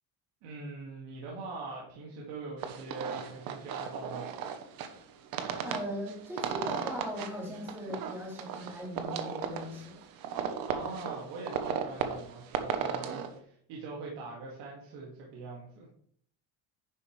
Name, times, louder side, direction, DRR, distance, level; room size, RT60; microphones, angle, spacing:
voice 1, 0.4-4.3 10.6-15.9, right 3 dB, 80° right, -4 dB, 2.4 m, -42 dB
sound 1, 2.6-13.3, right 7 dB, 55° right, 1.1 m, -36 dB
voice 2, 5.6-10.0, equal, 5° right, -6 dB, 3.0 m, -39 dB
10.5 x 7.0 x 3.3 m, 0.64 s
cardioid pair, 175°, 41 cm